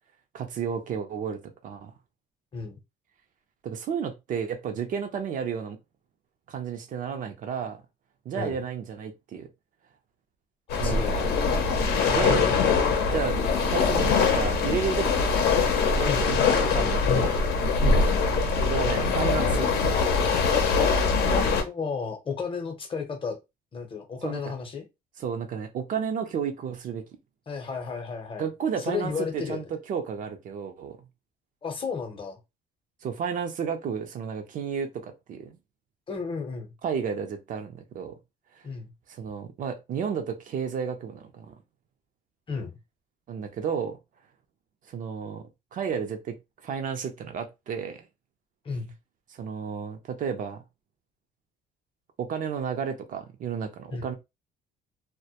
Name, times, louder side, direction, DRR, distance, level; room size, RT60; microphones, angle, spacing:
voice 1, 0.3-1.9 3.6-5.8 6.5-7.8 8.3-9.5 10.8-11.3 11.8-12.6 13.1-13.4 13.7-15.4 15.9-17.4 18.6-19.7 24.2-24.5 25.2-27.0 28.4-31.0 33.0-35.6 36.8-38.2 39.1-41.5 43.3-44.0 44.9-46.4 46.6-48.0 49.3-50.6 52.2-54.1, right 7 dB, 50° right, 0.5 m, -32 dB
sound 1, 10.7-21.6, left 4 dB, 75° left, 0.6 m, -23 dB
voice 2, 10.8-11.5 16.0-16.3 17.8-18.1 21.3-23.4 23.7-24.8 27.5-28.5 28.8-29.6 31.6-32.4 36.1-36.7 38.6-38.9 42.5-42.8 48.6-48.9 53.9-54.1, left 5 dB, 30° left, 0.7 m, -33 dB
2.1 x 2.1 x 2.8 m
cardioid pair, 110°, 17 cm